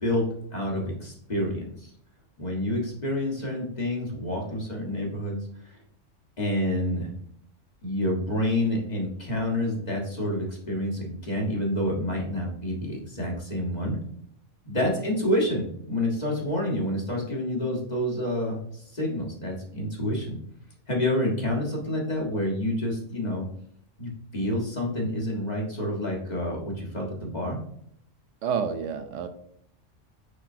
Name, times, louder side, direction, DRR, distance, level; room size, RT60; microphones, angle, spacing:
voice 1, 0.5-1.9 2.4-5.8 6.4-7.1 7.8-14.0 14.6-20.4 20.9-23.5 24.0-27.6, left 1 dB, 35° left, -1 dB, 1.7 m, -28 dB
voice 2, 28.4-29.3, right 7 dB, 75° right, 8 dB, 1.0 m, -29 dB
6.6 x 5.7 x 2.7 m, 0.69 s
omnidirectional pair, 1.3 m